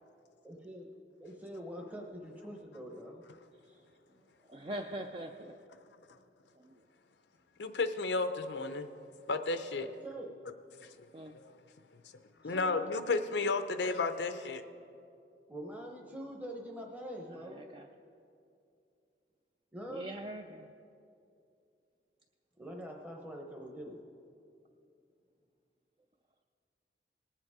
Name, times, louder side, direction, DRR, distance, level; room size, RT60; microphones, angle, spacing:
voice 1, 0.4-0.9 1.2-3.2 3.7-3.8 9.8-10.4 12.4-12.7 15.5-17.6 19.7-20.1 22.6-24.0, equal, 10° right, 0 dB, 0.8 m, -44 dB
voice 2, 4.5-5.5 6.6-6.8 11.1-11.4 12.7-12.9 17.3-17.9 19.9-20.7, right 1 dB, 30° right, 3 dB, 0.4 m, -43 dB
voice 3, 7.6-8.9 9.3-9.9 10.8-10.9 11.3-11.5 12.4-14.6, left 3 dB, 80° left, 9 dB, 0.6 m, -32 dB
19.0 x 7.7 x 4.8 m, 2.5 s
head